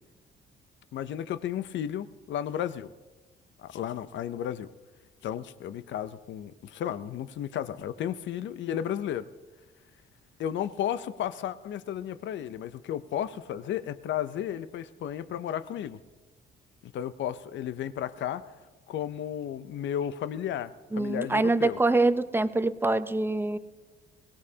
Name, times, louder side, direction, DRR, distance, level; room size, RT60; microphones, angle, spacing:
voice 1, 0.9-2.9 3.6-4.7 5.2-9.2 10.4-16.0 16.9-18.4 18.9-21.8, left 10 dB, 70° left, 14 dB, 0.6 m, -33 dB
voice 2, 20.9-23.6, right 2 dB, 10° right, 11 dB, 0.6 m, -25 dB
21.0 x 17.5 x 2.8 m, 1.3 s
cardioid pair, 90°, 20 cm